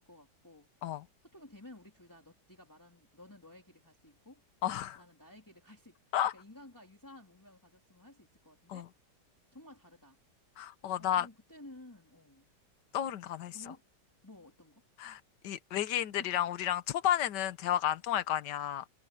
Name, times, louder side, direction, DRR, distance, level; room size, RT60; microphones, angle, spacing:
voice 1, 0.0-0.7 1.2-4.4 5.0-8.9 9.5-10.2 11.0-12.5 13.5-13.8 14.2-14.8 15.9-16.4, left 1 dB, 10° left, 3.1 m, -54 dB
voice 2, 4.6-5.0 6.1-6.3 8.7-8.8 10.6-11.3 12.9-13.5 15.0-18.8, left 11 dB, 80° left, 1.5 m, -32 dB
omnidirectional pair, 1.9 m